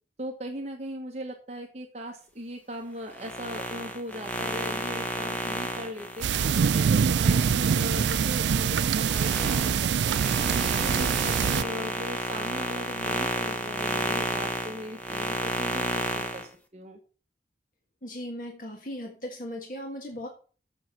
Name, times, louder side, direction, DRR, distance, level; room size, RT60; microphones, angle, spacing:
voice 1, 0.2-6.3 6.6-10.1 10.5-17.0, equal, 40° right, 1 dB, 1.3 m, -39 dB
sound 1, 3.1-8.2 8.6-16.5, equal, 10° left, 1.0 m, -32 dB
sound 2, 6.2-11.6, right 7 dB, 85° right, 0.4 m, -24 dB
voice 2, 18.0-20.3, left 1 dB, 50° left, 1 dB, 1.7 m, -37 dB
7.5 x 7.2 x 5.8 m, 0.39 s
head